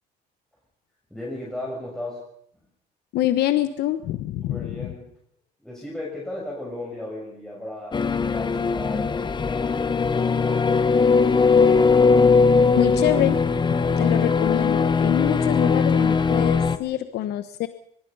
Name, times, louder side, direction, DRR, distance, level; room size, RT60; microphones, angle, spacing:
voice 1, 1.1-2.2 4.4-5.1 5.6-11.1, left 1 dB, 5° left, -4 dB, 6.7 m, -36 dB
voice 2, 3.1-4.9 12.7-13.4 13.7-17.7, left 13 dB, 75° left, 10 dB, 1.2 m, -25 dB
sound 1, 7.9-16.8, left 5 dB, 25° left, 1.2 m, -19 dB
23.5 x 21.5 x 5.6 m, 0.70 s
cardioid pair, 110°, 17 cm